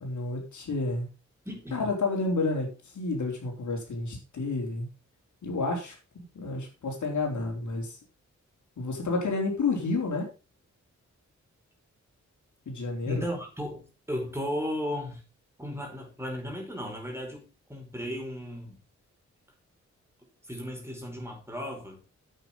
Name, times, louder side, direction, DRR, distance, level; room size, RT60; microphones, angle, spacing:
voice 1, 0.0-1.1 1.7-4.9 5.4-6.0 6.3-8.0 8.8-10.3 12.7-13.2, left 3 dB, 80° left, 1 dB, 4.0 m, -30 dB
voice 2, 1.5-1.9 13.1-15.2 15.6-18.8 20.4-22.0, left 1 dB, 10° right, 1 dB, 5.2 m, -35 dB
9.1 x 8.3 x 5.3 m, 0.31 s
wide cardioid pair, 85°, 29 cm